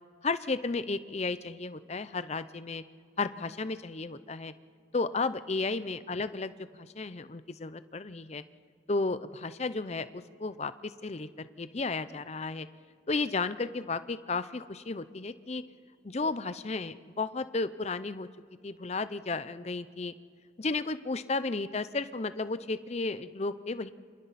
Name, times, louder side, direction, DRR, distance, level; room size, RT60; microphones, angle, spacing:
voice 1, 0.2-2.8 3.2-4.5 4.9-8.4 8.9-12.7 13.1-15.6 16.0-18.3 18.6-20.1 20.6-23.9, left 3 dB, 35° left, 13 dB, 0.6 m, -33 dB
30.0 x 26.0 x 4.2 m, 2.2 s
head